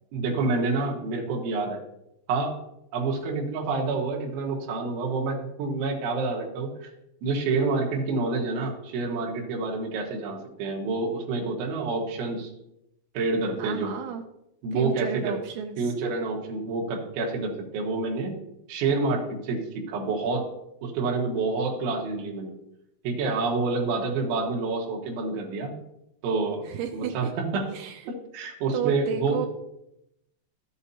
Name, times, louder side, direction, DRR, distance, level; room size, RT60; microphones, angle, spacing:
voice 1, 0.1-1.8 2.3-2.5 2.9-6.9 7.2-12.5 13.2-13.9 14.6-15.4 15.8-18.3 18.7-20.5 20.8-22.5 23.0-25.7 26.2-26.6 26.9-27.7 28.1-29.5, right 3 dB, 75° right, -2 dB, 3.9 m, -28 dB
voice 2, 13.6-14.2 14.7-15.9 26.6-27.3 27.7-28.1 28.7-29.5, right 8 dB, 90° right, 4 dB, 2.5 m, -33 dB
13.0 x 8.1 x 2.8 m, 0.82 s
omnidirectional pair, 5.7 m